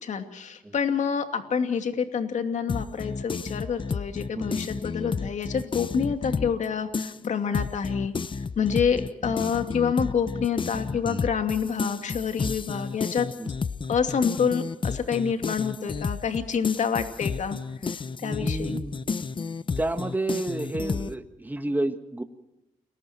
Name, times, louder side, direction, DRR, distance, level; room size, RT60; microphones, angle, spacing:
voice 1, 0.0-8.1 8.6-13.3 13.9-17.6 18.2-18.8, left 6 dB, 65° left, 7 dB, 2.6 m, -27 dB
sound 1, 2.7-6.6 6.9-21.1, left 5 dB, 40° left, 0.9 m, -31 dB
voice 2, 18.2-19.0 19.8-22.2, right 2 dB, 15° right, 7 dB, 1.6 m, -30 dB
30.0 x 22.0 x 4.5 m, 0.89 s
cardioid pair, 90°, 13 cm